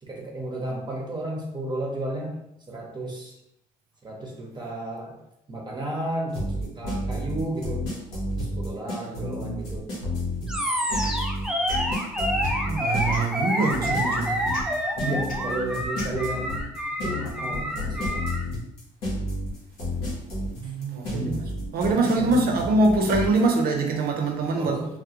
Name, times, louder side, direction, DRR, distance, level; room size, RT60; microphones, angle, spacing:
voice 1, 0.0-2.3 2.7-3.3 4.0-5.2 5.5-7.9 8.4-9.9 15.0-16.5 17.0-18.2 20.6-20.7 21.9-22.2 24.6-25.0, right 1 dB, 25° right, -2 dB, 0.8 m, -33 dB
sound 1, 6.3-23.4, left 1 dB, 85° left, 0.8 m, -30 dB
Animal, 10.5-18.4, equal, 5° right, 0.4 m, -28 dB
sound 2, 11.0-11.2 11.7-11.8 12.4-12.6 13.1-13.4 13.8-14.0 14.5-14.6 15.3-15.4 16.0-16.1, left 2 dB, 50° left, 0.8 m, -38 dB
voice 2, 12.7-14.3 20.6-21.4 21.7-25.0, right 2 dB, 65° right, 3 dB, 0.6 m, -24 dB
2.3 x 2.1 x 2.8 m, 0.80 s
supercardioid pair, 60°, 17 cm